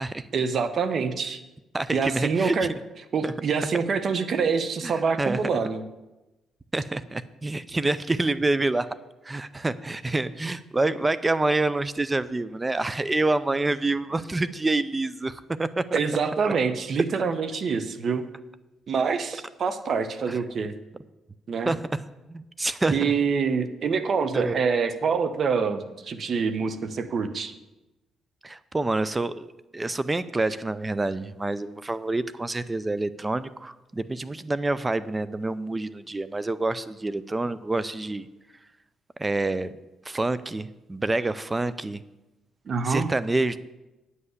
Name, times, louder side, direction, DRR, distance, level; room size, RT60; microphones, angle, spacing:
voice 1, 0.3-1.4 1.9-2.7 3.1-5.8 15.9-18.2 18.9-20.7 21.5-21.7 22.9-27.5 42.7-43.1, right 5 dB, 55° right, 11 dB, 0.9 m, -26 dB
voice 2, 1.7-2.8 3.2-3.3 4.8-5.4 6.7-8.9 9.2-16.0 20.3-20.4 21.7-22.0 22.3-23.1 24.3-24.6 28.4-29.5 29.7-38.3 39.2-39.7 40.1-42.0 42.8-43.6, right 2 dB, 20° right, 16 dB, 0.4 m, -27 dB
9.4 x 5.6 x 8.0 m, 1.0 s
cardioid pair, 90°, 0 cm